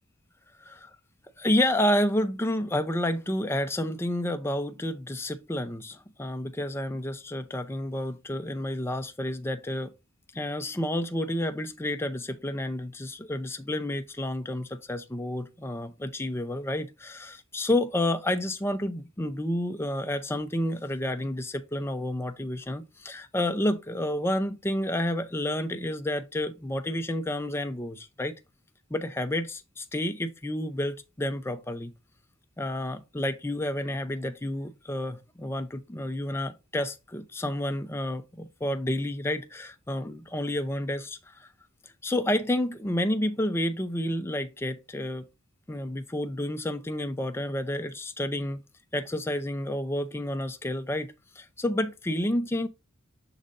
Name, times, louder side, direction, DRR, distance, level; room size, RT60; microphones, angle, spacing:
voice 1, 0.6-0.9 1.4-9.9 10.3-28.3 28.9-31.9 32.6-41.5 42.0-45.2 45.7-48.6 48.9-52.7, left 1 dB, 10° left, 0.5 m, -30 dB
6.4 x 3.9 x 3.9 m
head